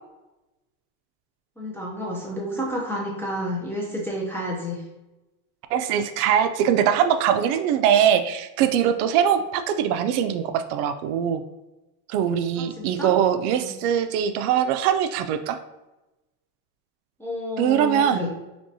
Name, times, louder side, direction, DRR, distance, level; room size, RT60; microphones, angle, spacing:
voice 1, 1.6-4.8 12.6-13.1 13.5-13.8 17.2-18.3, equal, 5° left, -4 dB, 0.4 m, -30 dB
voice 2, 5.7-11.4 12.1-15.6 17.6-18.2, right 9 dB, 85° right, 9 dB, 0.5 m, -22 dB
5.2 x 3.0 x 2.7 m, 1.0 s
cardioid pair, 155°, 43 cm